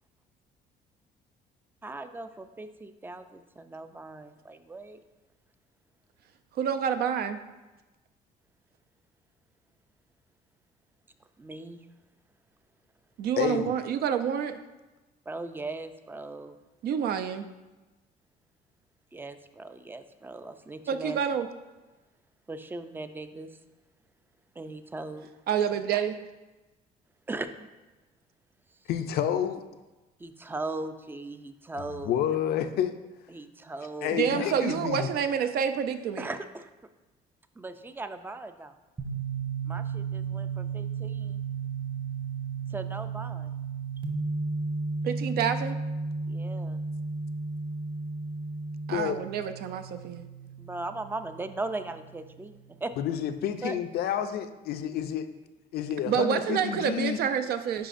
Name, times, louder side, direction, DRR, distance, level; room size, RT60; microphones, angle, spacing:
voice 1, 1.8-5.0 11.4-11.8 15.3-16.6 19.1-21.2 22.5-23.5 24.6-25.3 27.3-27.5 30.2-32.2 33.3-34.5 36.2-36.7 37.6-38.7 39.6-41.4 42.7-43.5 46.3-46.8 50.6-52.9 53.6-53.7, right 2 dB, 10° right, 9 dB, 0.4 m, -38 dB
voice 2, 6.6-7.4 13.2-14.6 16.8-17.5 20.9-21.5 25.5-26.2 34.1-36.3 45.0-45.8 48.9-50.3 56.1-57.9, right 8 dB, 65° right, 9 dB, 0.5 m, -28 dB
voice 3, 13.4-13.7 28.9-29.6 31.8-32.9 34.0-35.1 48.9-49.2 53.0-55.3 55.7-57.2, left 9 dB, 65° left, 9 dB, 0.5 m, -29 dB
sound 1, 39.0-52.6, right 4 dB, 30° right, 1.1 m, -34 dB
10.0 x 4.9 x 2.5 m, 1.1 s
cardioid pair, 110°, 17 cm